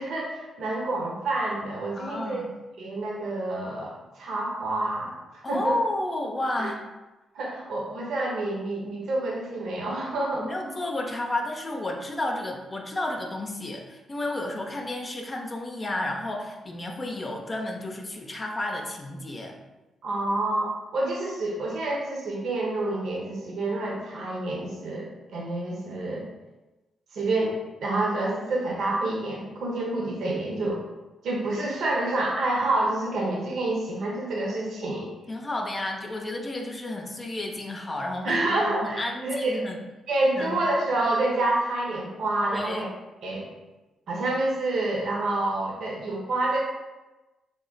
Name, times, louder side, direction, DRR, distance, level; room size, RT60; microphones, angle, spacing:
voice 1, 0.0-2.4 2.8-5.1 5.5-5.8 6.6-6.7 7.3-10.5 20.0-26.3 27.1-30.8 31.2-35.1 38.2-39.6 40.1-42.8 43.2-43.5 44.1-46.6, right 2 dB, 70° right, -3 dB, 0.8 m, -28 dB
voice 2, 2.0-2.5 5.4-6.8 10.4-19.6 35.3-39.8 40.3-40.7 42.5-42.9, left 1 dB, 35° left, 1 dB, 0.6 m, -32 dB
3.7 x 2.0 x 3.9 m, 1.1 s
hypercardioid pair, 45°, 0 cm